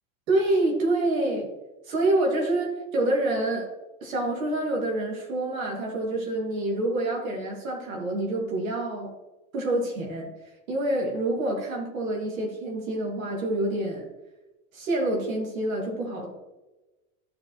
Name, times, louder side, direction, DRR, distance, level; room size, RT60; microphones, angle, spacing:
voice 1, 0.3-1.5 1.9-3.7 4.0-9.1 9.5-10.3 10.7-14.1 14.7-16.3, right 1 dB, 85° right, -1 dB, 2.8 m, -27 dB
13.5 x 4.9 x 3.2 m, 1.1 s
hypercardioid pair, 95°, 40 cm